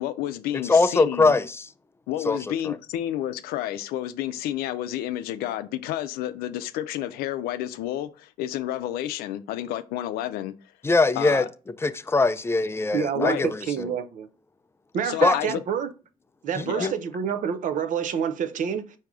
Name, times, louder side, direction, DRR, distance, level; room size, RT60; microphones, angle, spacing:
voice 1, 0.0-1.3 2.1-10.5 11.2-11.5 13.1-13.8 15.0-15.6 16.7-16.9, left 12 dB, 85° left, 0.4 m, -30 dB
voice 2, 0.6-1.7 2.3-2.4 2.7-2.8 10.8-11.4 11.8-13.6 15.2-15.4 16.6-16.9, left 3 dB, 15° left, 0.4 m, -21 dB
voice 3, 12.9-14.3 14.9-15.9 16.4-18.9, right 7 dB, 55° right, 0.6 m, -28 dB
4.7 x 2.7 x 3.5 m
cardioid pair, 80°, 15 cm